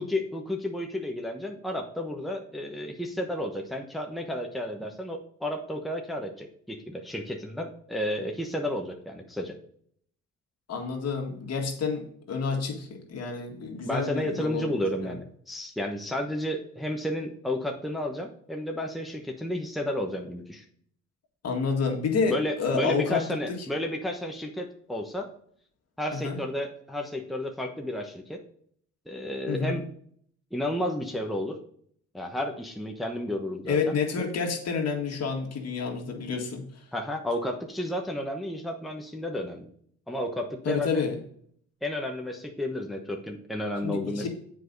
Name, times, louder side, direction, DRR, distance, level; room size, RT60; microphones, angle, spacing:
voice 1, 0.0-9.5 13.9-20.6 22.3-25.3 26.0-28.4 29.1-29.8 30.5-31.6 32.1-33.9 36.9-39.7 40.1-41.0 41.8-44.3, left 1 dB, ahead, 1 dB, 1.1 m, -32 dB
voice 2, 10.7-15.2 21.4-23.6 26.1-26.4 29.5-29.8 33.7-36.9 40.6-41.2 43.8-44.3, left 5 dB, 55° left, 1 dB, 2.0 m, -29 dB
7.6 x 4.9 x 4.0 m, 0.63 s
cardioid pair, 90°, 30 cm